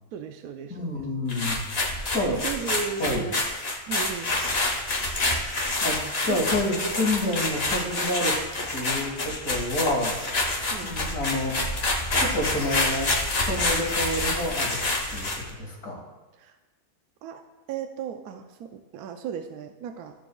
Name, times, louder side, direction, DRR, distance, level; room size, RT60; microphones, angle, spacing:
voice 1, 0.1-0.8 2.3-3.4 3.9-4.4 6.3-6.5 10.7-10.9 16.4-16.6 17.2-17.4 17.7-20.1, right 7 dB, 80° right, 6 dB, 1.1 m, -35 dB
voice 2, 0.7-1.6 2.1-2.3 3.0-3.3 5.8-8.3 8.7-10.2 10.8-11.6 12.2-13.1 13.5-14.8 15.1-16.0, left 1 dB, 75° left, -1 dB, 2.3 m, -28 dB
sound 1, 1.3-15.5, left 2 dB, 45° left, 1.5 m, -27 dB
15.0 x 6.9 x 2.3 m, 1.2 s
omnidirectional pair, 1.6 m